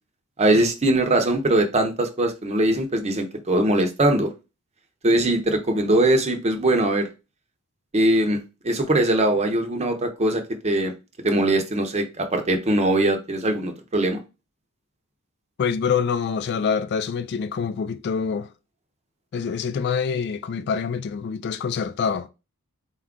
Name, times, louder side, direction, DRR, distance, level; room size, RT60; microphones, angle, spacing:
voice 1, 0.4-4.3 5.0-7.1 7.9-8.4 8.6-10.9 11.2-14.2, right 1 dB, 30° right, 0.6 m, -21 dB
voice 2, 15.6-18.5 19.3-22.3, left 6 dB, 50° left, 0.3 m, -25 dB
4.2 x 2.3 x 3.6 m
head